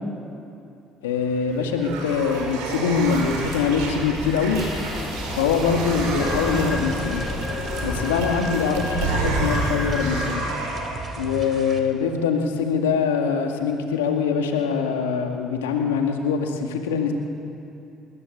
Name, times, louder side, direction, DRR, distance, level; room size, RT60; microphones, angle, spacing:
voice 1, 1.0-4.6 5.3-7.2 7.8-10.4 11.2-17.1, left 6 dB, 90° left, 3 dB, 2.0 m, -23 dB
sound 1, 1.2-11.2, right 3 dB, 80° right, 5.4 m, -30 dB
sound 2, 2.9-10.4, left 2 dB, 10° left, 6.2 m, -31 dB
sound 3, 5.8-11.8, right 3 dB, 45° right, 3.5 m, -37 dB
21.0 x 19.5 x 8.7 m, 2.8 s
hypercardioid pair, 60°, 0 cm